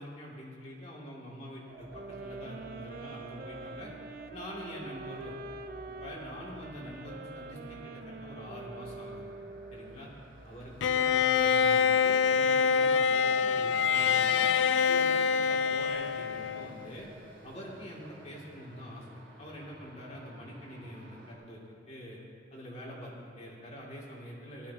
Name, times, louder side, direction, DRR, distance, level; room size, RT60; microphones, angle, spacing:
voice 1, 0.0-3.9 4.3-5.4 5.9-9.2 9.7-10.1 10.4-14.5 14.9-17.1 17.4-19.1 19.4-22.2 22.5-24.7, equal, 35° left, -5 dB, 2.4 m, -45 dB
sound 1, 1.7-21.4, right 2 dB, 85° right, 2.7 m, -51 dB
sound 2, 1.9-10.1, right 3 dB, 55° right, 0.5 m, -45 dB
Bowed string instrument, 10.8-16.9, left 6 dB, 85° left, 0.4 m, -25 dB
17.0 x 12.5 x 2.8 m, 2.3 s
head